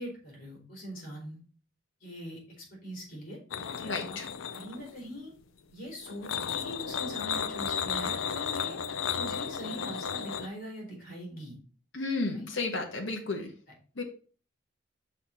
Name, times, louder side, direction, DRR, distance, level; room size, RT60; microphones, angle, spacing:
voice 1, 0.0-1.4 2.0-3.4 3.7-4.2 4.5-5.3 5.7-8.8 9.1-11.6 12.3-12.5, equal, 45° left, -2 dB, 3.8 m, -42 dB
sound 1, 3.5-5.0 6.1-10.5, left 7 dB, 80° left, 0.5 m, -34 dB
voice 2, 3.8-4.3 11.9-13.5 14.0-14.1, left 3 dB, 60° left, 2 dB, 1.4 m, -32 dB
5.8 x 4.4 x 5.5 m, 0.39 s
head